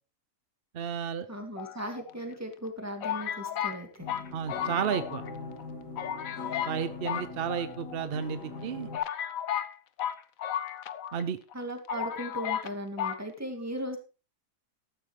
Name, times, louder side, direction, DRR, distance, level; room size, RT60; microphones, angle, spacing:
voice 1, 0.7-1.3 4.3-5.2 6.7-8.9 11.1-11.4, right 7 dB, 50° right, 11 dB, 0.7 m, -32 dB
voice 2, 1.3-4.1 11.5-14.0, right 1 dB, 10° right, 3 dB, 2.6 m, -37 dB
sound 1, 1.6-2.3 3.0-5.3 5.6-5.7 6.0-6.8 7.0-8.0 8.6-8.7 8.9-11.2 11.5-11.6 11.9-12.7 13.0-13.2, left 10 dB, 60° left, 1.2 m, -34 dB
sound 2, 4.0-9.0, left 3 dB, 85° left, 2.8 m, -42 dB
14.0 x 12.5 x 3.2 m, 0.33 s
omnidirectional pair, 1.7 m